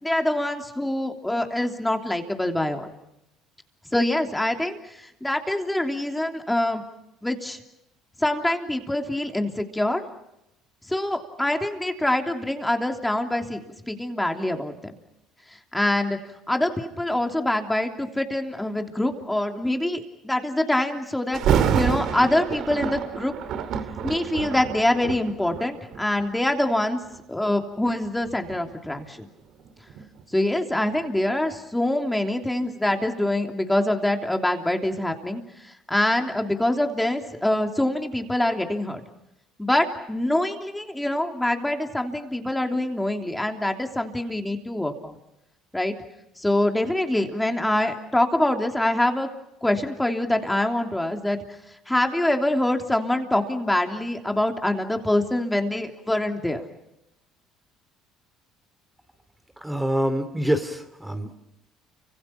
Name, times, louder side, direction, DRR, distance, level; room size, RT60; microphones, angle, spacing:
voice 1, 0.0-2.9 3.9-6.8 7.2-7.6 8.2-10.0 10.9-14.9 15.7-16.2 16.5-23.3 24.0-27.0 27.3-29.3 30.3-39.0 39.6-45.2 45.7-45.9 46.4-49.3 49.6-51.4 51.9-56.6, left 1 dB, 10° left, 4 dB, 3.1 m, -25 dB
Thunder, 21.3-26.3 27.0-27.2 27.8-30.7 31.0-31.1, right 7 dB, 60° right, 2.4 m, -28 dB
voice 2, 59.6-61.4, equal, 10° right, 7 dB, 2.8 m, -25 dB
30.0 x 25.5 x 5.8 m, 0.88 s
hypercardioid pair, 70°, 0 cm